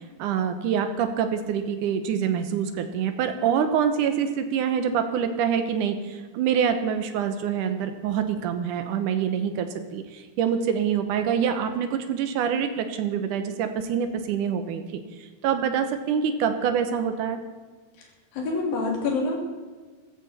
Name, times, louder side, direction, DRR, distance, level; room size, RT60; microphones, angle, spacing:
voice 1, 0.2-15.0 15.4-17.4, right 7 dB, 70° right, 8 dB, 2.2 m, -26 dB
voice 2, 18.3-19.4, left 3 dB, 65° left, 0 dB, 4.5 m, -26 dB
15.0 x 14.0 x 4.3 m, 1.5 s
omnidirectional pair, 4.5 m